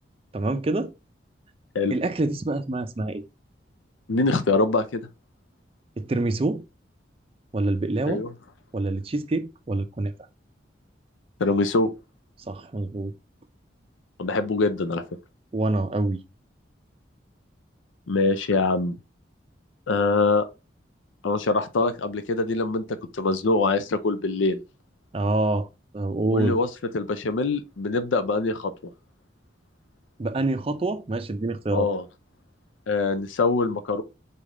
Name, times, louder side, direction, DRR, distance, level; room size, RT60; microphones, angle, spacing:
voice 1, 0.3-0.9 1.9-3.2 6.0-6.6 7.5-8.2 8.7-10.1 12.5-13.1 15.5-16.2 25.1-25.7 25.9-26.6 30.2-31.9, right 2 dB, 30° right, 0.4 m, -26 dB
voice 2, 4.1-5.0 8.1-8.3 11.4-11.9 14.2-15.0 18.1-19.0 19.9-20.5 21.2-22.8 23.1-24.6 26.3-26.7 26.9-28.7 31.7-32.0 32.9-34.0, left 3 dB, 85° left, 0.5 m, -23 dB
4.1 x 3.4 x 3.7 m
head